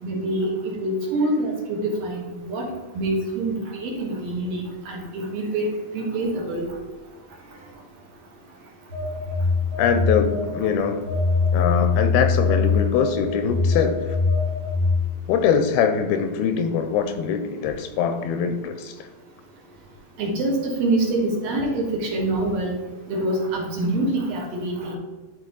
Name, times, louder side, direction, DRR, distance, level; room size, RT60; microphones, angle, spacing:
voice 1, 0.0-6.7 20.2-22.8 23.1-24.9, right 2 dB, 65° right, -1 dB, 3.1 m, -25 dB
Telephone, 8.9-10.7 11.0-15.1, left 4 dB, 35° right, 2.6 m, -22 dB
voice 2, 9.8-11.1 11.5-14.2 15.3-19.0, left 7 dB, 80° left, 8 dB, 2.3 m, -23 dB
12.5 x 4.3 x 3.9 m, 1.2 s
omnidirectional pair, 4.7 m